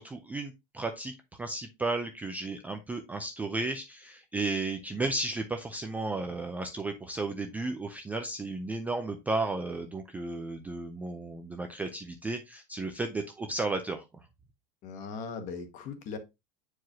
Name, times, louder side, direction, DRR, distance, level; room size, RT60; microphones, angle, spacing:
voice 1, 0.0-14.0, right 2 dB, 5° right, 0.4 m, -34 dB
voice 2, 14.8-16.2, left 5 dB, 35° left, 1.1 m, -39 dB
7.6 x 4.8 x 2.8 m
supercardioid pair, 165°, 21 cm